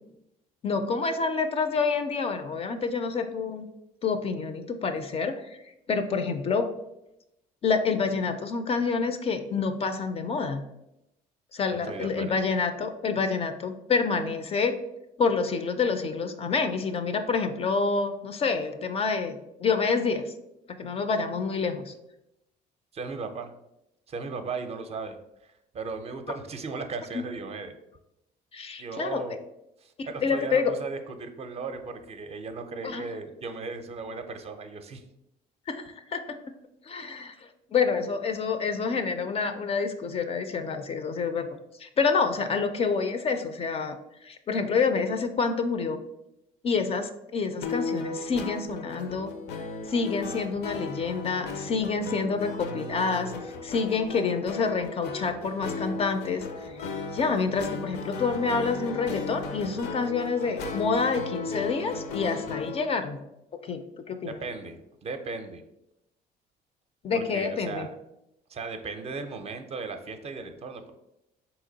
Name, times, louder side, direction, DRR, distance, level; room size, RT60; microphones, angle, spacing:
voice 1, 0.6-3.6 4.0-5.5 5.9-6.7 7.6-10.6 11.5-14.7 15.2-20.3 20.7-21.9 27.1-27.2 28.5-29.2 30.0-30.7 32.8-33.1 35.7-35.8 36.1-36.5 36.9-41.5 41.8-44.0 44.2-46.0 46.6-49.3 49.9-53.3 53.6-56.7 57.1-63.2 63.6-64.4 67.0-67.9, left 5 dB, 35° left, 8 dB, 0.4 m, -28 dB
voice 2, 11.8-12.4 22.9-23.5 24.1-25.2 25.4-27.7 28.8-29.4 29.8-35.0 64.3-65.6 67.1-67.9 68.5-70.9, right 4 dB, 35° right, 7 dB, 0.5 m, -36 dB
sound 1, 47.6-62.9, left 4 dB, 80° left, 0.6 m, -36 dB
4.0 x 2.9 x 3.8 m, 0.87 s
cardioid pair, 110°, 17 cm